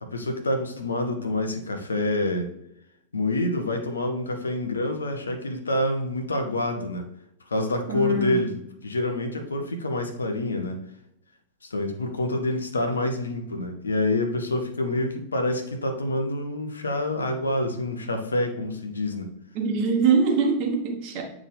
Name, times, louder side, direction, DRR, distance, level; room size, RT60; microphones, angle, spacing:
voice 1, 0.0-2.5 3.1-7.0 7.5-8.5 8.8-10.8 11.6-19.3, left 1 dB, 75° left, 6 dB, 0.8 m, -27 dB
voice 2, 7.9-8.5 19.5-21.2, right 4 dB, 45° right, 2 dB, 1.3 m, -23 dB
8.5 x 3.6 x 3.3 m, 0.77 s
figure-of-eight pair, 90°, 0 cm